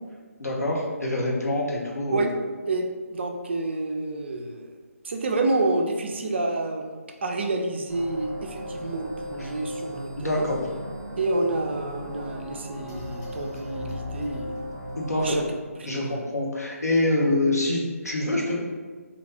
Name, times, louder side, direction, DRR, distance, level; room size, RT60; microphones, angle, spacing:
voice 1, 0.4-2.3 9.4-9.5 10.2-10.6 15.0-15.4 15.8-18.6, left 1 dB, 85° left, -2 dB, 0.8 m, -25 dB
voice 2, 2.7-4.7 5.0-6.9 7.2-10.5 11.2-14.6 15.2-15.4 15.9-16.2, right 2 dB, 45° right, 3 dB, 0.4 m, -28 dB
sound 1, 7.9-15.5, left 1 dB, 5° left, 0.7 m, -37 dB
3.3 x 2.2 x 3.2 m, 1.5 s
figure-of-eight pair, 145°, 8 cm